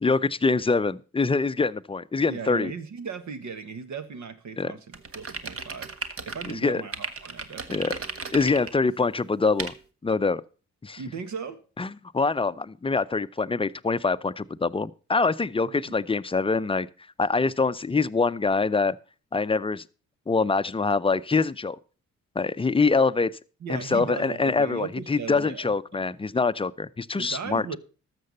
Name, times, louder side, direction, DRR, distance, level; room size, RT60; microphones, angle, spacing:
voice 1, 0.0-2.7 4.6-4.7 6.5-6.8 7.7-7.9 8.3-9.7 10.0-10.4 10.8-11.0 11.8-16.9 17.2-19.0 19.3-19.8 20.3-21.8 22.4-23.3 23.7-27.8, left 4 dB, 15° left, 0.6 m, -24 dB
voice 2, 2.3-5.9 6.2-8.1 11.0-11.6 15.6-15.9 23.6-26.1 27.2-27.8, right 6 dB, 65° right, 1.6 m, -37 dB
sound 1, 4.9-6.5 6.9-8.7 9.6-9.7, right 4 dB, 45° right, 1.5 m, -35 dB
13.0 x 6.9 x 5.3 m
supercardioid pair, 55°, 31 cm